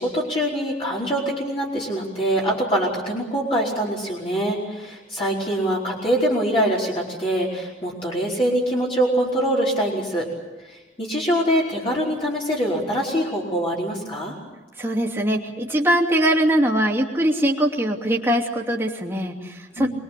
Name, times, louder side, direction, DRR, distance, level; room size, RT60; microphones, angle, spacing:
voice 1, 0.0-10.3 10.6-14.4 19.8-19.9, equal, 30° left, -4 dB, 4.6 m, -24 dB
voice 2, 14.8-19.9, right 1 dB, 15° right, 0 dB, 2.8 m, -22 dB
25.5 x 22.0 x 8.4 m, 1.1 s
head